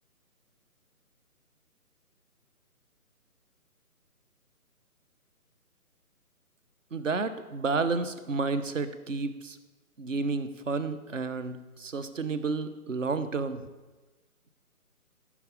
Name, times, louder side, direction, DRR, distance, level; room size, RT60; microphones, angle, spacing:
voice 1, 6.9-9.6 10.0-13.6, right 4 dB, 55° right, 12 dB, 1.0 m, -31 dB
13.5 x 6.1 x 8.2 m, 1.2 s
figure-of-eight pair, 150°, 45 cm